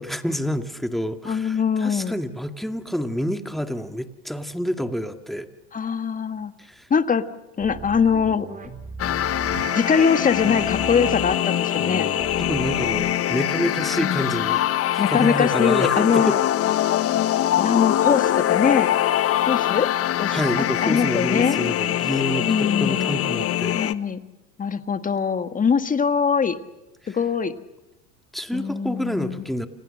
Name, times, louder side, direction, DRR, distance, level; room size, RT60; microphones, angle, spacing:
voice 1, 0.0-5.5 6.6-6.9 12.4-14.7 14.9-16.4 20.3-23.8 27.0-27.2 28.3-29.7, equal, ahead, 6 dB, 2.1 m, -28 dB
voice 2, 1.3-2.2 5.7-6.5 6.9-7.3 7.6-8.5 9.8-12.1 14.0-14.2 15.0-16.4 17.6-18.9 19.5-19.9 20.2-21.6 22.4-23.1 23.7-24.2 24.6-26.6 27.1-27.5 28.5-29.4, left 6 dB, 20° left, 9 dB, 1.7 m, -22 dB
sound 1, 7.6-9.6 10.0-11.3 11.8-13.3, right 5 dB, 20° right, 3.2 m, -37 dB
sound 2, 9.0-23.9, left 12 dB, 40° left, 1.2 m, -23 dB
sound 3, 9.5-17.7, right 6 dB, 55° right, 4.2 m, -40 dB
29.5 x 28.0 x 6.6 m, 0.98 s
hypercardioid pair, 90°, 37 cm